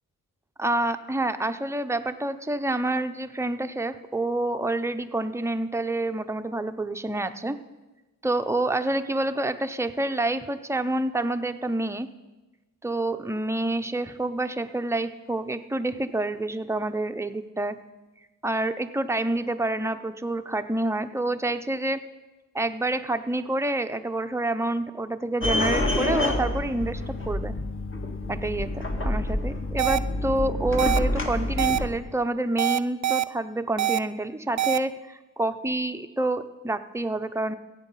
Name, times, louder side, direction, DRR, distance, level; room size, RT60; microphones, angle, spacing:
voice 1, 0.6-7.6 8.2-12.1 12.8-17.7 18.4-22.0 22.5-27.5 28.3-37.5, right 2 dB, 10° right, 8 dB, 0.6 m, -28 dB
sound 1, 25.4-31.9, left 1 dB, 40° left, 1.7 m, -27 dB
sound 2, 29.8-30.0 30.8-31.0 31.6-31.8 32.6-33.2 33.8-34.0 34.6-34.8, right 14 dB, 60° right, 0.4 m, -23 dB
15.5 x 8.2 x 5.5 m, 1.1 s
cardioid pair, 90°, 32 cm